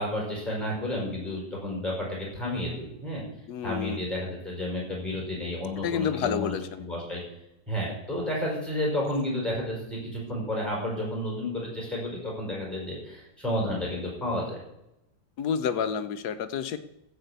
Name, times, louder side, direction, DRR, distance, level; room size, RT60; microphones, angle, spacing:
voice 1, 0.0-3.2 3.6-7.2 7.7-14.6, left 1 dB, ahead, -3 dB, 5.2 m, -31 dB
voice 2, 3.5-4.0 5.8-6.8 15.4-16.8, left 7 dB, 70° left, 11 dB, 1.3 m, -29 dB
15.5 x 5.2 x 8.1 m, 0.86 s
omnidirectional pair, 1.9 m